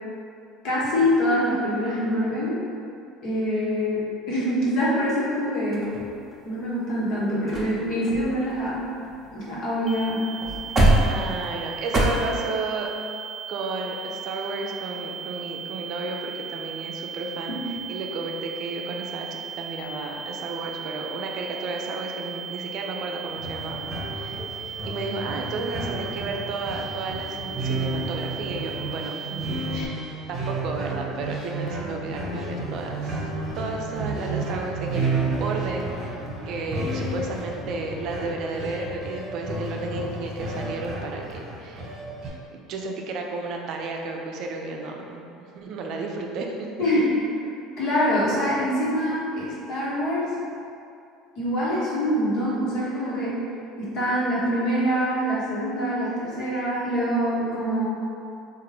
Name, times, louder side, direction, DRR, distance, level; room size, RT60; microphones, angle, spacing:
voice 1, 0.6-2.5 3.2-5.9 6.4-8.8 9.3-10.2 17.5-17.6 46.8-47.2 47.8-50.3 51.4-53.4 53.8-57.8, equal, 65° left, -7 dB, 1.2 m, -25 dB
sound 1, 5.7-6.6 7.2-7.3 7.5-7.7 8.0-9.6 9.9-10.0 10.3-12.0, right 1 dB, 20° right, 0.8 m, -24 dB
sound 2, 9.9-29.9, right 7 dB, 5° left, 0.3 m, -37 dB
voice 2, 11.1-12.9 13.5-17.6 17.9-23.9 24.1-30.0 30.3-33.3 33.6-36.2 36.4-45.2 45.5-46.7, right 3 dB, 60° right, 1 dB, 0.4 m, -33 dB
sound 3, 23.3-42.3, right 2 dB, 40° right, 1.2 m, -32 dB
3.7 x 2.5 x 3.2 m, 2.5 s
supercardioid pair, 90°, 0 cm